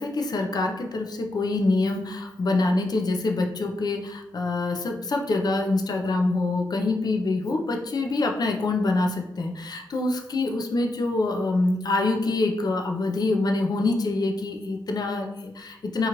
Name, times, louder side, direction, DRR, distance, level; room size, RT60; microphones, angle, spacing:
voice 1, 0.0-16.1, left 2 dB, 55° left, 3 dB, 0.4 m, -25 dB
2.9 x 2.4 x 2.8 m, 0.87 s
cardioid pair, 70°, 8 cm